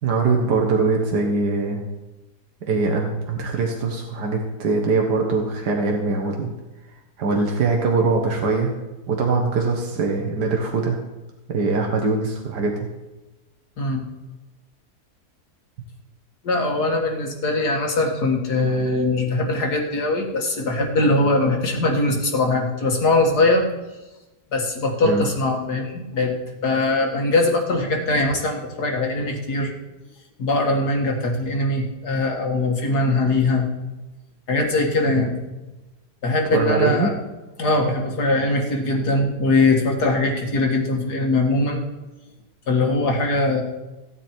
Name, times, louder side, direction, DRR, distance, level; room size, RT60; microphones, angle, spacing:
voice 1, 0.0-1.8 2.7-6.5 7.2-8.7 9.1-11.0 11.5-12.8 25.0-25.2 36.5-37.1, right 3 dB, 85° right, 1 dB, 1.8 m, -22 dB
voice 2, 16.4-23.7 24.5-26.3 26.6-29.7 30.4-33.7 34.5-35.4 36.2-37.1 37.6-41.8 42.7-43.6, left 2 dB, 75° left, 1 dB, 2.4 m, -21 dB
16.0 x 9.0 x 4.5 m, 1.1 s
omnidirectional pair, 1.7 m